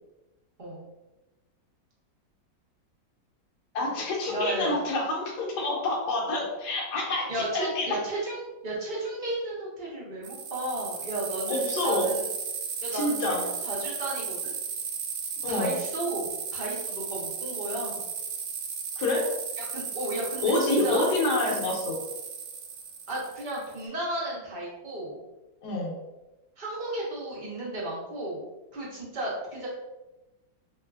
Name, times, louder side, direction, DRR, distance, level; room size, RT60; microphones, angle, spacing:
voice 1, 3.7-8.0 11.5-12.1 12.9-13.4 15.4-15.7 19.0-19.3 20.4-22.0 25.6-26.0, left 2 dB, 65° left, -2 dB, 1.4 m, -27 dB
voice 2, 4.3-4.8 7.3-12.2 12.8-14.5 15.5-18.0 19.6-21.0 23.1-25.2 26.6-28.4 28.7-29.7, right 1 dB, 45° right, -5 dB, 0.6 m, -34 dB
sound 1, 10.2-23.8, right 6 dB, 70° right, 1.1 m, -35 dB
3.5 x 3.3 x 2.4 m, 1.0 s
omnidirectional pair, 2.0 m